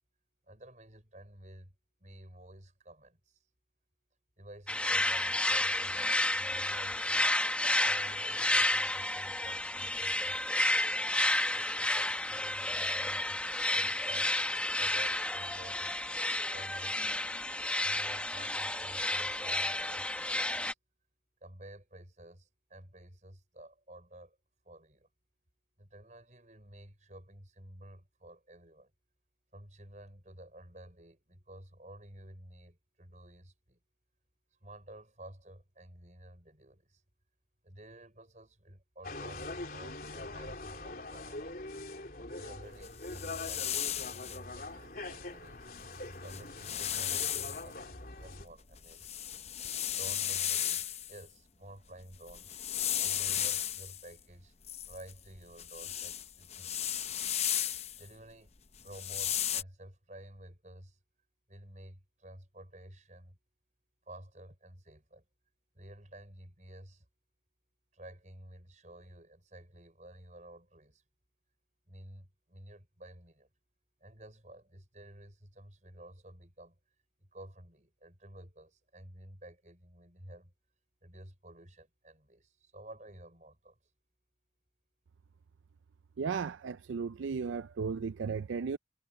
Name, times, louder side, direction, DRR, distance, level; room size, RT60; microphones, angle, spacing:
voice 1, 0.5-3.4 4.4-7.3 7.8-11.0 11.5-14.3 14.7-16.2 16.5-17.4 17.8-20.8 21.4-24.4 24.6-25.1 25.8-28.9 29.5-33.8 34.6-37.0 37.6-41.7 42.3-45.7 46.2-49.3 49.9-52.5 53.0-54.5 54.9-57.1 58.0-58.5 58.8-61.0 61.5-63.4 64.1-65.3 65.7-67.1 67.9-71.0 71.9-73.5 74.0-76.8 77.2-80.5 81.0-83.8, right 1 dB, 40° right, 5.3 m, -52 dB
sound 1, 4.7-20.7, left 1 dB, 5° left, 0.9 m, -31 dB
sound 2, 39.0-48.5, left 2 dB, 50° left, 3.4 m, -43 dB
sound 3, 42.8-44.4 45.8-45.9 46.2-47.6 48.2-51.2 52.1-54.0 54.7-58.0 58.8-59.6, left 10 dB, 35° left, 0.8 m, -35 dB
voice 2, 86.2-88.8, right 5 dB, 90° right, 0.4 m, -35 dB
head